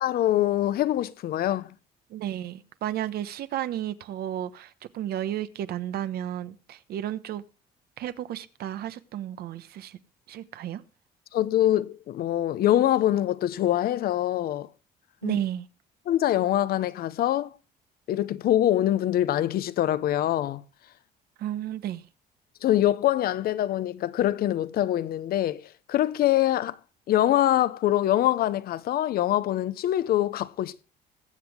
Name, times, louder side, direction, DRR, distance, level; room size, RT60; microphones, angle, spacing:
voice 1, 0.0-1.7 11.3-14.7 15.2-15.4 16.1-17.5 18.1-20.6 22.6-26.8 27.1-30.8, left 13 dB, 65° left, 0.8 m, -24 dB
voice 2, 2.1-7.4 8.0-10.0 10.3-10.8 15.2-15.7 21.4-22.0, right 11 dB, 65° right, 1.1 m, -33 dB
21.0 x 8.0 x 3.5 m
cardioid pair, 110°, 17 cm